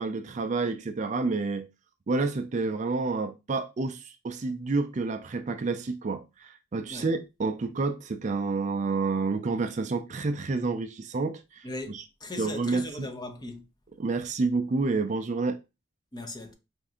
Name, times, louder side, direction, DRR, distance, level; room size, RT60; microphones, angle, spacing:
voice 1, 0.0-1.7 2.1-12.0 12.4-13.1 14.0-15.6, right 3 dB, 35° right, 0.4 m, -29 dB
voice 2, 11.6-13.7 16.1-16.5, left 2 dB, 20° left, 0.6 m, -38 dB
4.2 x 2.6 x 3.6 m
head